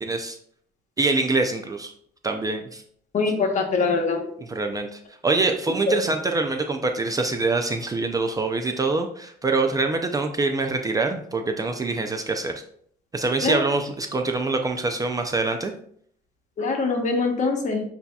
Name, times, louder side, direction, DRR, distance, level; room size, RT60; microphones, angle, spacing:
voice 1, 0.0-0.4 1.0-1.9 2.2-2.8 4.5-12.6 13.1-15.7, right 3 dB, 20° right, 5 dB, 0.4 m, -25 dB
voice 2, 3.1-4.2 13.4-13.6 16.6-17.8, left 4 dB, 45° left, 2 dB, 1.1 m, -23 dB
8.0 x 2.8 x 2.3 m, 0.64 s
cardioid pair, 110°, 17 cm